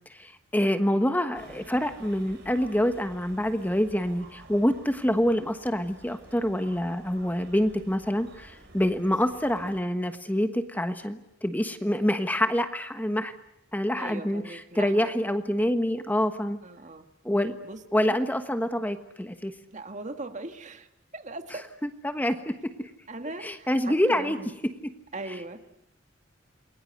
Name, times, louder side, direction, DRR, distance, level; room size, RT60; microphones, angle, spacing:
voice 1, 0.1-13.3 13.7-16.6 17.2-17.5 17.9-19.5 21.8-22.5 22.8-22.9 23.4-24.4, equal, 10° left, 8 dB, 1.3 m, -26 dB
Ambience Downtown Mokpo Bus Stop, 1.3-9.8, right 2 dB, 60° right, 5.1 m, -51 dB
voice 2, 14.0-15.1 16.6-17.1 17.6-18.2 19.7-20.9 21.1-21.6 23.1-24.5 25.1-25.6, right 2 dB, 40° right, 7 dB, 1.8 m, -39 dB
28.5 x 22.0 x 8.0 m, 0.86 s
head